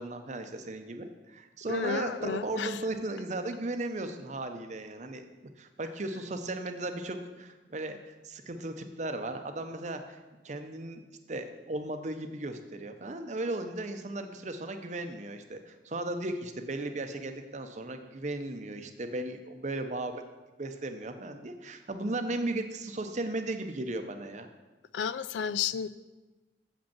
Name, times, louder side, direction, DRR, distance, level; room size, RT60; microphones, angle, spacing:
voice 1, 0.0-5.2 5.6-10.2 10.4-11.0 11.3-20.2 20.6-24.5, right 2 dB, 40° right, 7 dB, 0.7 m, -36 dB
voice 2, 1.7-2.8 24.9-25.9, left 7 dB, 85° left, 15 dB, 0.3 m, -32 dB
7.0 x 5.2 x 7.1 m, 1.2 s
head